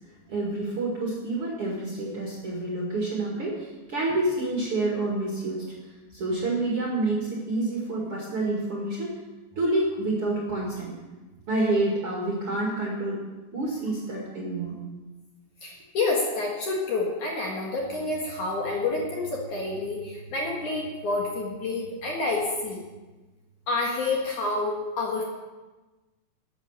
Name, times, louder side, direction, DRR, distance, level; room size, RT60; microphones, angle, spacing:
voice 1, 0.3-5.7 6.1-9.2 9.6-10.9 11.5-13.2 13.5-14.8, right 2 dB, 45° right, -3 dB, 2.1 m, -28 dB
voice 2, 15.6-22.8 23.7-25.2, left 3 dB, 55° left, -2 dB, 2.6 m, -28 dB
13.0 x 8.6 x 6.6 m, 1.2 s
omnidirectional pair, 5.0 m